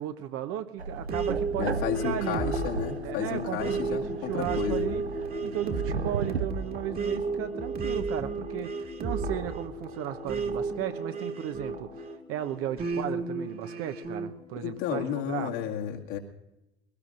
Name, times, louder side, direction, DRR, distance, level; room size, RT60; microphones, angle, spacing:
voice 1, 0.0-2.5 2.9-5.0 5.4-15.5, right 11 dB, 45° right, 8 dB, 1.0 m, -35 dB
sound 1, 0.8-6.5, right 5 dB, 90° right, 0.5 m, -36 dB
sound 2, 1.1-12.2 12.8-14.3, right 4 dB, 30° right, 1.8 m, -33 dB
voice 2, 1.6-4.9 14.6-16.2, left 9 dB, 60° left, 1 dB, 2.2 m, -32 dB
sound 3, 1.8-15.6, left 4 dB, 15° left, 1.6 m, -42 dB
22.5 x 18.0 x 2.6 m, 0.92 s
figure-of-eight pair, 70°, 31 cm